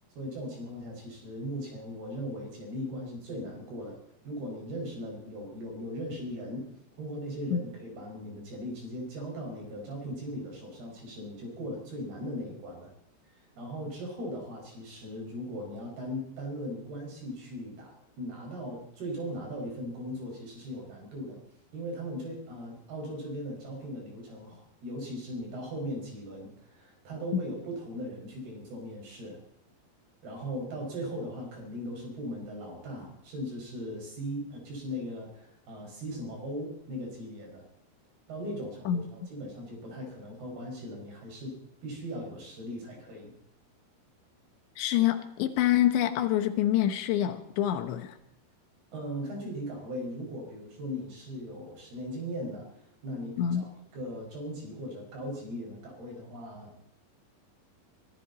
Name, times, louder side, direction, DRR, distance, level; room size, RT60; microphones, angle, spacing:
voice 1, 0.1-4.0 4.2-6.7 7.0-12.9 13.4-21.4 21.7-29.4 30.2-37.7 38.3-41.5 41.8-43.3 48.9-52.7 53.0-56.7, equal, 60° right, 1 dB, 7.4 m, -38 dB
voice 2, 44.8-48.2 53.4-53.6, left 11 dB, 85° left, 8 dB, 3.4 m, -26 dB
23.0 x 15.0 x 4.2 m, 0.77 s
omnidirectional pair, 5.1 m